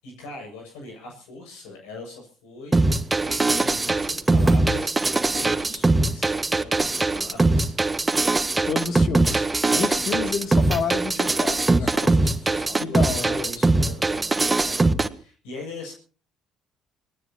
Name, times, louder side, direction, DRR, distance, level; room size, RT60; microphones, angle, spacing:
voice 1, 0.0-7.8 9.6-10.1 11.8-15.9, left 3 dB, 90° left, 6.9 m, -41 dB
sound 1, 2.7-15.1, right 2 dB, 20° right, 1.6 m, -21 dB
voice 2, 8.7-9.5 9.7-11.9 12.8-13.3, left 6 dB, 65° left, 2.6 m, -29 dB
25.5 x 19.0 x 2.9 m
supercardioid pair, 65°, 0 cm